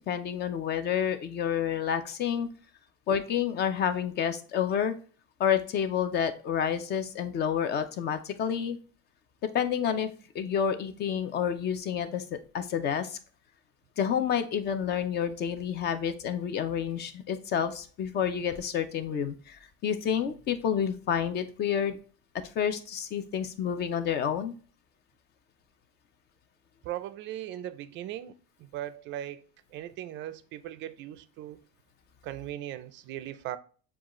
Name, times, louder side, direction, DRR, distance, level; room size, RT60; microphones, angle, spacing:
voice 1, 0.1-2.5 3.1-4.9 5.4-8.8 9.5-13.2 14.0-22.0 22.5-24.5, left 8 dB, 35° left, 0.6 m, -29 dB
voice 2, 26.8-28.3 28.7-29.4 29.7-31.6 32.2-33.6, right 12 dB, 40° right, 0.4 m, -38 dB
7.2 x 2.4 x 3.0 m
cardioid pair, 150°, 29 cm